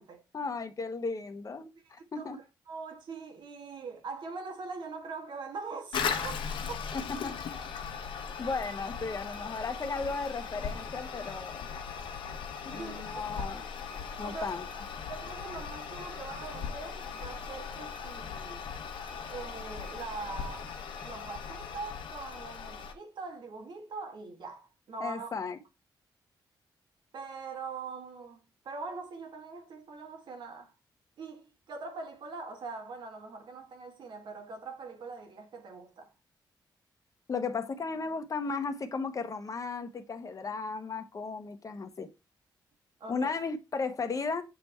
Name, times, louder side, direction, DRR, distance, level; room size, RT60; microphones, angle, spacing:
voice 1, 0.3-2.4 6.9-7.3 8.4-11.7 12.6-13.6 14.2-14.7 25.0-25.6 37.3-42.1 43.1-44.4, left 4 dB, 45° left, 1.0 m, -35 dB
voice 2, 1.8-2.4 2.7-6.4 6.7-6.8 12.8-13.5 14.2-14.5 15.1-18.6 19.3-20.8 21.0-25.3 27.1-30.7 31.2-36.1 43.0-43.3, right 4 dB, 70° right, 1.5 m, -42 dB
Toilet flush, 5.9-22.9, left 6 dB, 85° left, 1.0 m, -38 dB
7.6 x 3.5 x 4.3 m
cardioid pair, 80°, 8 cm